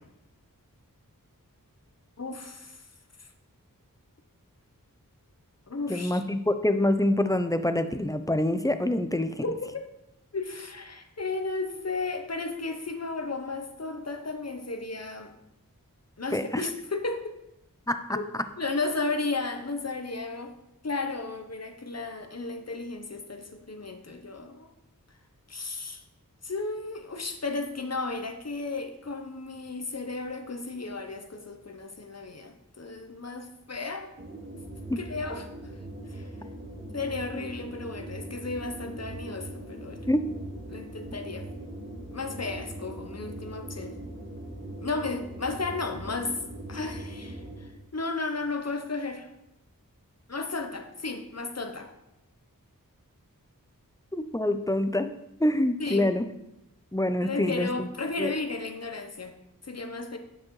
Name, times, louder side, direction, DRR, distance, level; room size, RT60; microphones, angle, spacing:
voice 1, 2.2-2.8 5.7-6.2 9.4-9.8 10.3-15.3 16.2-17.4 18.1-18.3 18.6-20.5 20.8-24.7 25.5-26.0 26.4-34.1 35.0-35.5 36.1-36.3 36.9-40.0 40.7-41.5 42.1-43.9 44.8-46.3 46.7-49.3 50.3-51.9 55.8-56.1 57.2-59.3 59.6-60.2, left 3 dB, 50° left, 6 dB, 0.9 m, -34 dB
voice 2, 5.9-9.4 16.3-16.6 17.9-18.0 34.9-35.0 40.1-40.2 54.1-55.1 55.4-56.3 56.9-57.9 58.2-58.3, left 1 dB, 10° left, 9 dB, 0.5 m, -26 dB
sound 1, 34.2-47.8, right 1 dB, 35° right, 1.1 m, -41 dB
8.9 x 6.1 x 3.1 m, 0.86 s
wide cardioid pair, 40°, 34 cm